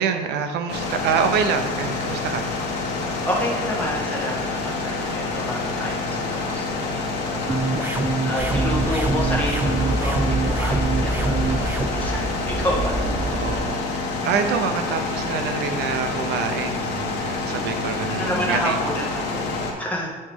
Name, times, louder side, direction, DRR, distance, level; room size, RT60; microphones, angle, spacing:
voice 1, 0.0-2.5 13.2-18.7, right 6 dB, 80° right, 7 dB, 0.7 m, -26 dB
sound 1, 0.7-19.7, left 3 dB, 90° left, 1.1 m, -27 dB
voice 2, 3.2-13.0 17.5-20.2, equal, 10° left, -3 dB, 1.6 m, -29 dB
sound 2, 7.5-11.9, right 3 dB, 10° right, 0.4 m, -25 dB
sound 3, 8.4-13.5, right 2 dB, 40° right, 0.9 m, -27 dB
9.3 x 3.2 x 3.6 m, 1.4 s
cardioid pair, 110°, 17 cm